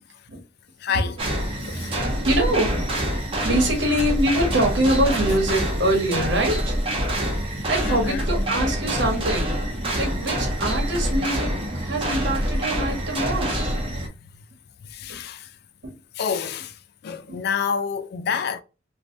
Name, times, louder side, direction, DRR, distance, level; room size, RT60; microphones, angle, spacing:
voice 1, 0.8-1.2 1.7-2.0 3.9-4.0 7.8-8.3 13.9-14.1 14.8-15.6 16.1-18.6, left 6 dB, 60° left, 0.3 m, -28 dB
sound 1, 1.2-14.1, equal, 30° right, 1.0 m, -26 dB
voice 2, 1.7-2.8 3.2-6.8 7.7-9.6 10.0-13.7 15.1-15.2 15.8-15.9 17.3-17.4, right 1 dB, 70° right, 1.4 m, -24 dB
3.3 x 2.7 x 2.5 m
head